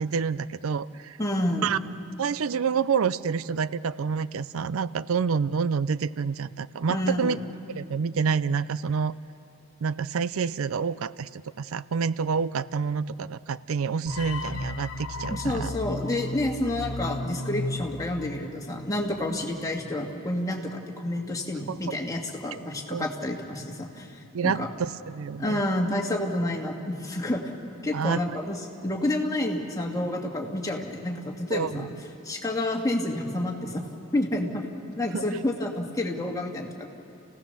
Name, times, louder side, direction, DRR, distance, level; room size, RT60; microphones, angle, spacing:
voice 1, 0.0-1.2 1.6-1.8 2.2-7.4 7.7-9.1 9.8-15.7 21.7-21.9 22.9-23.1 24.3-25.6 27.9-28.4 31.5-31.9 35.1-35.2, right 6 dB, 85° right, 17 dB, 0.5 m, -28 dB
voice 2, 1.2-1.7 6.9-7.3 15.3-24.1 24.4-24.7 25.4-27.4 27.8-28.6 28.8-31.9 32.3-33.8 34.1-34.7 35.0-36.9, left 1 dB, 15° left, 0 dB, 2.1 m, -29 dB
sound 1, 14.1-19.2, left 2 dB, 75° left, 1.2 m, -35 dB
29.0 x 17.0 x 6.9 m, 2.6 s
head